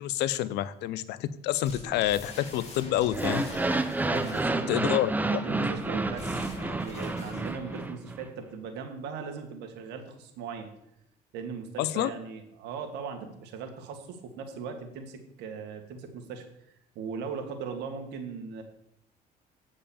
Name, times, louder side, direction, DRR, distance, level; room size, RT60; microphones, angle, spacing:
voice 1, 0.0-3.4 4.7-5.4 11.8-12.1, left 13 dB, 80° left, 17 dB, 0.6 m, -28 dB
sound 1, 1.6-4.6 5.7-7.9, left 3 dB, 40° left, 2.6 m, -43 dB
sound 2, 3.1-8.2, right 2 dB, 10° right, 0.6 m, -30 dB
voice 2, 4.1-10.7 11.3-16.4 16.9-18.6, right 5 dB, 85° right, 5 dB, 1.7 m, -39 dB
8.7 x 5.4 x 7.0 m, 0.79 s
cardioid pair, 110°, 17 cm